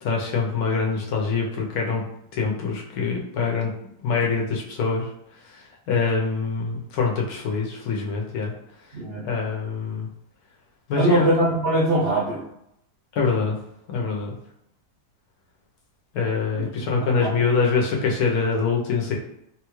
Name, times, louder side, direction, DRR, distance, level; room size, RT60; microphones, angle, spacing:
voice 1, 0.0-2.0 2.3-3.7 4.0-5.1 5.9-8.5 9.2-10.1 10.9-11.3 13.2-13.6 13.9-14.4 16.1-19.1, left 4 dB, 75° left, -1 dB, 1.2 m, -24 dB
voice 2, 8.9-9.2 11.0-12.4 16.6-16.7 17.0-17.4, right 2 dB, 55° right, -5 dB, 0.7 m, -22 dB
3.4 x 2.3 x 3.0 m, 0.76 s
omnidirectional pair, 1.6 m